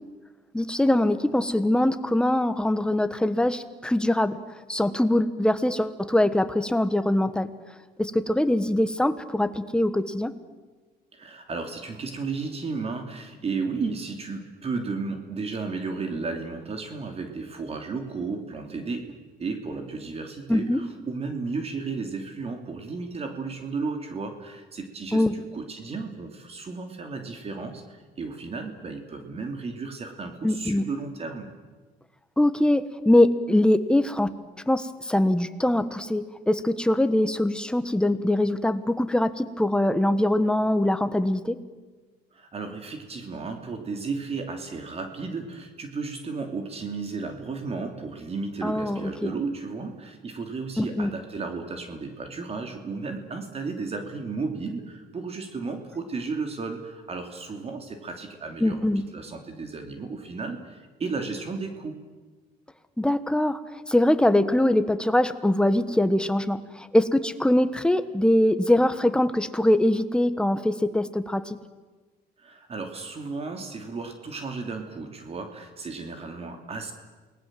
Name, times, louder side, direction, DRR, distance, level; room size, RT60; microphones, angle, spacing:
voice 1, 0.5-4.4 4.7-7.5 8.0-10.3 20.5-20.8 25.1-25.3 30.4-30.8 32.4-34.3 34.7-41.6 48.6-49.3 50.8-51.1 58.6-59.0 63.0-63.6 63.9-71.6, left 1 dB, 5° left, 11 dB, 1.4 m, -23 dB
voice 2, 11.1-31.5 42.3-58.9 59.1-61.9 72.4-76.9, right 4 dB, 35° right, 5 dB, 2.9 m, -34 dB
28.5 x 19.5 x 7.7 m, 1.3 s
cardioid pair, 110°, 17 cm